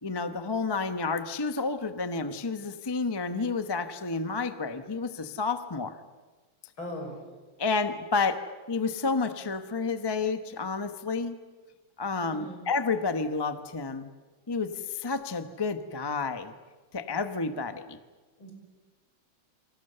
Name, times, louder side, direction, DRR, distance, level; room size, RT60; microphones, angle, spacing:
voice 1, 0.0-6.0 7.6-8.4 8.7-11.4 12.0-14.1 14.5-16.5 16.9-18.0, left 4 dB, 20° left, 9 dB, 0.8 m, -30 dB
voice 2, 6.8-7.2 12.3-12.6 18.4-18.5, left 1 dB, 75° left, 2 dB, 6.7 m, -38 dB
29.0 x 25.0 x 6.8 m, 1.3 s
omnidirectional pair, 2.2 m